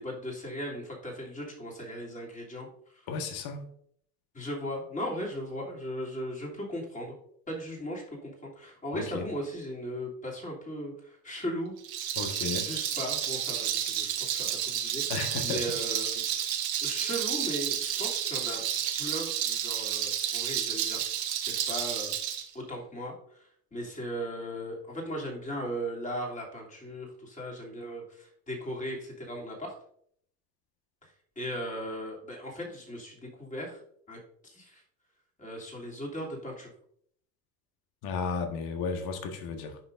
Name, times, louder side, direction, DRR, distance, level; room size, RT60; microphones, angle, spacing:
voice 1, 0.0-2.7 2.9-3.1 4.3-7.2 7.5-11.7 12.6-15.0 15.4-16.2 16.8-18.6 19.0-21.0 21.7-22.1 22.5-29.7 31.0-31.1 31.4-33.8 34.1-34.8 35.4-36.7, equal, 15° left, 2.9 m, -37 dB
voice 2, 3.1-3.7 8.9-9.3 12.2-12.7 15.1-15.6 38.0-39.8, left 4 dB, 50° left, 1.5 m, -33 dB
Rattle, 11.8-22.4, right 10 dB, 75° right, 1.7 m, -31 dB
9.7 x 5.8 x 2.6 m
hypercardioid pair, 85°, 49 cm